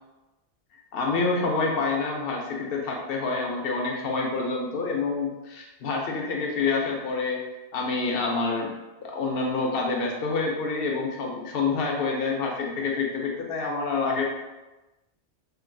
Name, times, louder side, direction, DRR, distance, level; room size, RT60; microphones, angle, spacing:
voice 1, 0.9-7.4 7.7-8.7 9.0-14.2, left 4 dB, 65° left, -1 dB, 0.8 m, -27 dB
2.9 x 2.4 x 2.5 m, 1.1 s
omnidirectional pair, 1.1 m